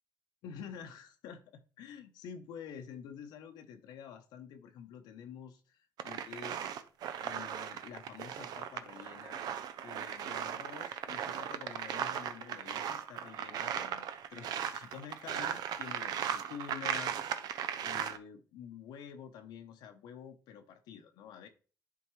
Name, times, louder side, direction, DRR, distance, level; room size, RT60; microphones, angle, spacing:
voice 1, 0.4-6.7 7.2-9.4 9.8-17.1 17.8-21.5, left 8 dB, 85° left, 6 dB, 0.8 m, -48 dB
sound 1, 6.0-18.2, right 9 dB, 70° right, 0.5 m, -37 dB
10.5 x 3.9 x 3.1 m, 0.38 s
cardioid pair, 105°, 7 cm